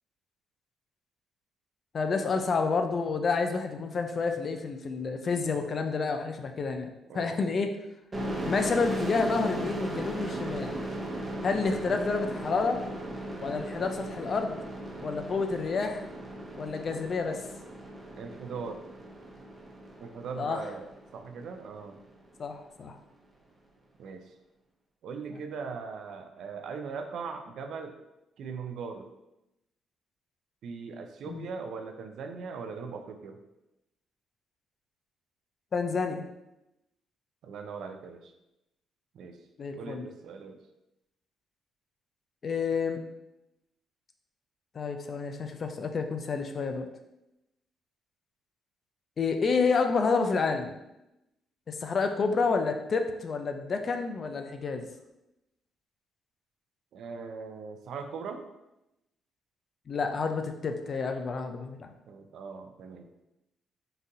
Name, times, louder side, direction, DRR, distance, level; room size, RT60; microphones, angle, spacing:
voice 1, 1.9-7.7 8.4-10.9 11.4-12.8 13.4-14.6 15.0-16.1 16.6-17.4 20.4-20.6 22.4-23.0 25.3-25.4 31.3-31.4 35.7-36.3 39.6-40.1 42.4-43.0 44.7-46.9 49.2-50.7 51.7-54.9 59.9-61.9, left 4 dB, 45° left, 6 dB, 0.4 m, -29 dB
sound 1, 8.1-21.6, right 1 dB, 25° right, 0.8 m, -37 dB
voice 2, 18.1-18.8 20.0-20.9 21.1-22.0 24.0-24.2 25.0-28.0 28.4-29.1 30.6-33.4 37.4-38.3 39.1-39.4 39.7-40.6 56.9-58.4 62.1-63.2, right 5 dB, 70° right, 6 dB, 0.4 m, -40 dB
3.9 x 2.7 x 2.5 m, 0.90 s
cardioid pair, 90°, 0 cm